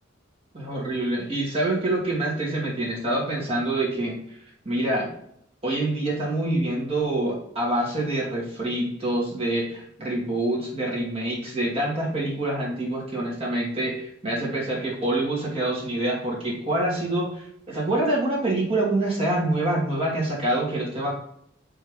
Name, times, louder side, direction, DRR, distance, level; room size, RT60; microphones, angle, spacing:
voice 1, 0.5-4.2 4.6-5.1 5.6-21.1, right 1 dB, 30° right, -4 dB, 2.5 m, -26 dB
6.3 x 5.4 x 3.4 m, 0.71 s
head